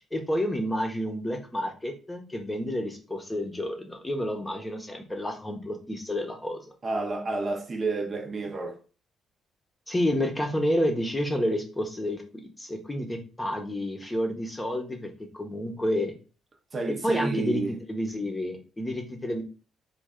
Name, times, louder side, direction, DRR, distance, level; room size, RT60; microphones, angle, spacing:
voice 1, 0.1-6.7 9.9-12.2 12.6-16.1 16.9-17.6 17.9-19.4, left 1 dB, 15° left, 0.8 m, -29 dB
voice 2, 6.8-8.8 16.7-17.8, right 3 dB, 40° right, 0.6 m, -30 dB
3.1 x 2.3 x 3.6 m
cardioid pair, 90°, 0 cm